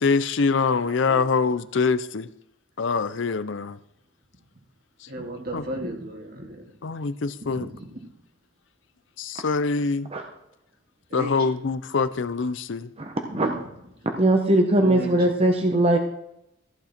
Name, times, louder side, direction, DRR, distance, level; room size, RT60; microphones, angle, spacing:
voice 1, 0.0-2.3 2.8-3.8 5.5-5.6 6.8-7.7 9.2-10.1 11.1-12.9, left 4 dB, 65° left, 13 dB, 0.5 m, -24 dB
voice 2, 5.1-6.7 7.4-8.0 11.1-11.5 13.3-13.6 14.8-15.3, right 1 dB, 50° right, 1 dB, 2.3 m, -35 dB
voice 3, 13.0-13.5 14.2-16.0, right 1 dB, 30° right, 3 dB, 1.1 m, -20 dB
14.5 x 8.3 x 4.4 m, 0.81 s
head